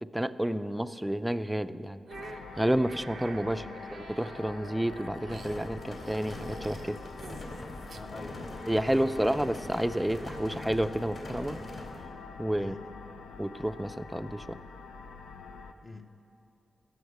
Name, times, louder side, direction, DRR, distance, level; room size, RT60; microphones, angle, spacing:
voice 1, 0.1-2.0 2.6-7.0 8.7-11.6 12.4-12.8 13.4-14.6, right 1 dB, 10° right, 13 dB, 0.4 m, -30 dB
sound 1, 2.1-15.7, left 4 dB, 90° left, 0.5 m, -46 dB
sound 2, 2.1-11.2, right 4 dB, 70° right, 0.5 m, -50 dB
voice 2, 3.4-3.8 7.9-9.4 12.6-13.0 15.8-16.1, left 3 dB, 40° left, 3 dB, 0.7 m, -46 dB
sound 3, 5.3-12.1, left 1 dB, 60° left, 2.5 m, -42 dB
12.5 x 6.5 x 8.0 m, 2.8 s
cardioid pair, 50°, 0 cm